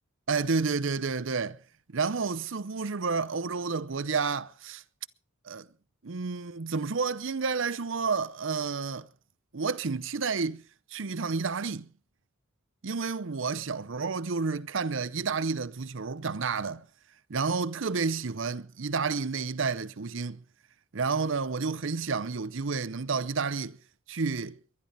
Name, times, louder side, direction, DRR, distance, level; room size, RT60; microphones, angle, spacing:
voice 1, 0.3-1.6 1.9-4.8 5.4-5.7 6.0-9.1 9.5-10.6 10.9-11.9 12.8-16.8 17.3-20.4 20.9-23.8 24.1-24.6, right 4 dB, 65° right, 0.7 m, -30 dB
22.5 x 11.0 x 4.1 m
head